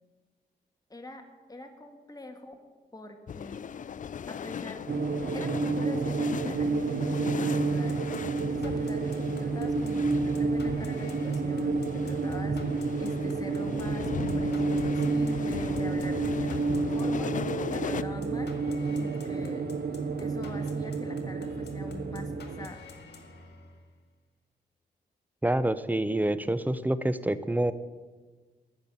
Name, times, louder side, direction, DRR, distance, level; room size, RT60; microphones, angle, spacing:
voice 1, 0.9-1.2 1.5-2.6 2.9-3.7 4.3-4.8 5.3-8.0 8.4-18.5 18.9-19.6 20.2-22.8, left 2 dB, 20° left, 4 dB, 1.7 m, -43 dB
sound 1, 3.3-18.0, left 8 dB, 45° left, 0.4 m, -38 dB
sound 2, 4.9-22.7, right 4 dB, 60° right, 0.9 m, -30 dB
sound 3, 7.6-23.9, left 3 dB, 70° left, 2.0 m, -48 dB
voice 2, 25.4-27.7, right 1 dB, 10° right, 14 dB, 0.7 m, -27 dB
13.5 x 5.8 x 9.6 m, 1.4 s
cardioid pair, 60°, 18 cm